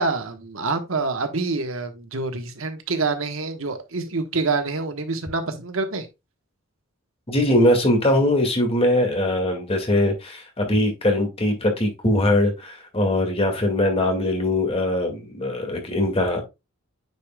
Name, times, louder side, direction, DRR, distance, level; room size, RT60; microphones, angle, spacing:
voice 1, 0.0-6.1, right 3 dB, 75° right, 1.2 m, -26 dB
voice 2, 7.3-16.4, left 1 dB, 30° left, 2.0 m, -21 dB
9.4 x 5.0 x 2.3 m
head